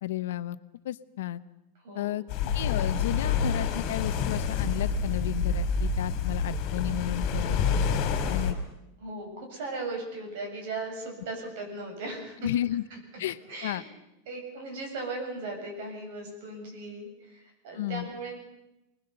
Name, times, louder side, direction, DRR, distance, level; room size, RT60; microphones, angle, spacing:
voice 1, 0.0-0.6 0.8-1.4 1.9-2.2 2.5-8.6 12.4-12.8 13.2-13.8 17.7-18.1, left 14 dB, 70° left, 14 dB, 0.9 m, -33 dB
sound 1, 2.3-8.5, left 5 dB, 35° left, 3.5 m, -28 dB
voice 2, 9.0-12.6 12.9-13.0 13.5-13.8 14.3-18.4, right 2 dB, 50° right, 2 dB, 7.9 m, -37 dB
25.0 x 20.5 x 6.9 m, 0.91 s
supercardioid pair, 180°, 0 cm